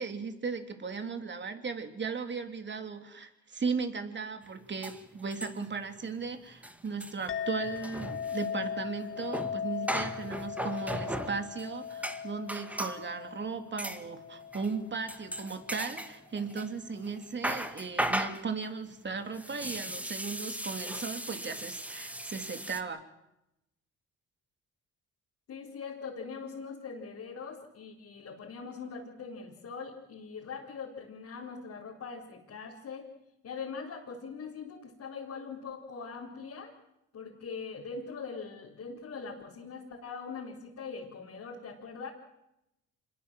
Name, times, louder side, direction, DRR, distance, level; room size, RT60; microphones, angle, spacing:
voice 1, 0.0-23.0, right 5 dB, 35° right, 6 dB, 3.3 m, -37 dB
sound 1, 4.4-4.5 4.8-5.9 6.1-6.3 6.5-13.0 13.8-14.0 14.5-14.8 15.1-16.7 17.0-22.8, right 1 dB, 5° right, 1.8 m, -37 dB
Chink clink, 7.3-16.0, left 7 dB, 45° left, 1.9 m, -39 dB
voice 2, 25.5-33.1 33.4-36.7 37.1-42.1, left 5 dB, 60° left, -5 dB, 4.5 m, -42 dB
27.0 x 21.5 x 7.7 m, 0.87 s
cardioid pair, 90°, 30 cm